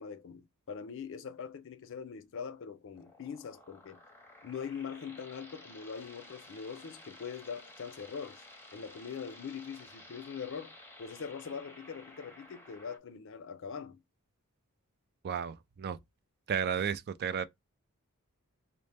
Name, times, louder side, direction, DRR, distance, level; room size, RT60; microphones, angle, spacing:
voice 1, 0.0-4.0 4.4-8.4 8.7-14.0, left 6 dB, 60° left, 0.5 m, -42 dB
sound 1, 2.9-13.0, left 2 dB, 10° left, 0.7 m, -54 dB
voice 2, 15.2-16.0 16.5-17.4, right 7 dB, 45° right, 0.4 m, -33 dB
4.1 x 2.1 x 3.3 m
head